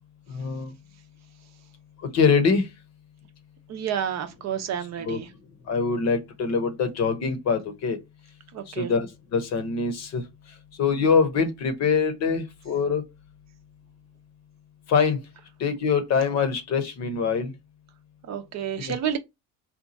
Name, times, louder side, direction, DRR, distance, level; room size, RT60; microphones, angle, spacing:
voice 1, 0.3-0.7 2.1-2.7 5.0-5.2 5.7-8.0 8.7-10.2 10.8-13.0 14.9-15.2 15.6-17.5 18.8-19.0, left 5 dB, 45° left, 0.8 m, -24 dB
voice 2, 3.7-5.3 8.5-8.9 18.2-19.2, right 9 dB, 45° right, 0.7 m, -30 dB
2.8 x 2.3 x 3.9 m
cardioid pair, 120°, 37 cm